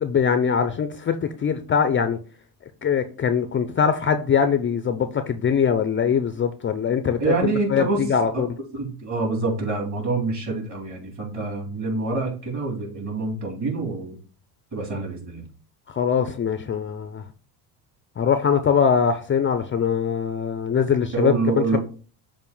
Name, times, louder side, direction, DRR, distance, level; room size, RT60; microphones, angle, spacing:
voice 1, 0.0-2.2 2.8-8.5 15.9-17.2 18.2-21.8, left 7 dB, 30° left, 0.5 m, -22 dB
voice 2, 7.2-8.5 8.7-14.2 14.7-15.4 21.1-21.8, right 3 dB, 40° right, 3.5 m, -26 dB
6.9 x 2.6 x 5.4 m
supercardioid pair, 85°, 45 cm